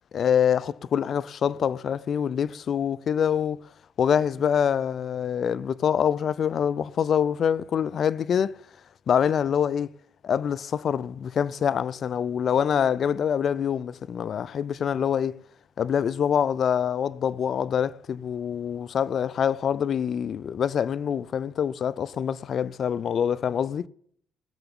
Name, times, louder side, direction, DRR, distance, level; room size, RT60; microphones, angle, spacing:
voice 1, 0.1-3.6 4.0-8.5 9.1-9.9 10.2-15.4 15.8-23.9, left 8 dB, 55° left, 0.5 m, -25 dB
19.0 x 6.9 x 9.9 m
cardioid pair, 80°, 0 cm